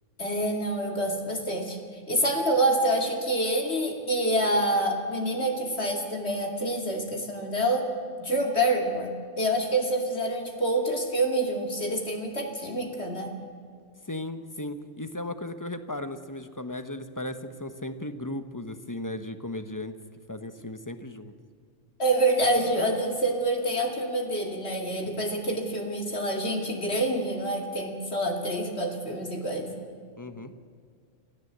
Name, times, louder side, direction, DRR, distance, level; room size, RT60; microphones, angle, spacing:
voice 1, 0.2-1.8 2.1-7.9 8.2-9.1 9.4-13.3 22.0-29.7, right 1 dB, 55° left, 2 dB, 2.8 m, -27 dB
voice 2, 14.0-20.0 20.3-21.3 30.2-30.5, left 1 dB, 15° left, 9 dB, 1.1 m, -36 dB
26.0 x 15.5 x 8.1 m, 2.2 s
omnidirectional pair, 1.3 m